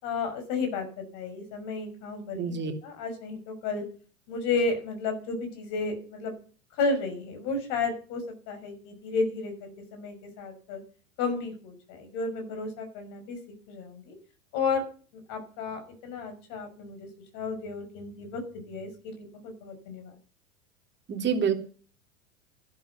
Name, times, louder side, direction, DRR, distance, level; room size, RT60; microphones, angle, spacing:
voice 1, 0.0-3.8 4.3-6.3 6.8-10.8 11.2-13.4 13.7-14.2 14.5-14.8 15.3-17.1 17.3-20.1, left 4 dB, 50° left, 7 dB, 6.0 m, -32 dB
voice 2, 2.3-2.7 21.1-21.6, right 7 dB, 25° right, 4 dB, 3.2 m, -27 dB
13.5 x 11.5 x 6.0 m, 0.41 s
figure-of-eight pair, 90°, 40 cm